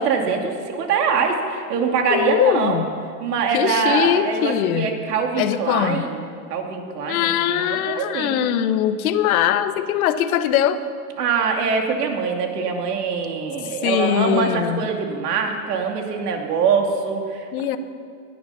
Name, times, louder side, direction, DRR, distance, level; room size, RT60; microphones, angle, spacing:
voice 1, 0.0-2.8 3.2-6.2 6.5-8.4 11.2-17.5, right 5 dB, 80° right, 2 dB, 2.7 m, -23 dB
voice 2, 2.1-2.9 3.5-4.9 5.4-6.1 7.1-10.8 13.8-14.9 17.5-17.8, left 10 dB, 65° left, 11 dB, 1.1 m, -21 dB
19.0 x 11.5 x 5.8 m, 2.2 s
supercardioid pair, 155°, 47 cm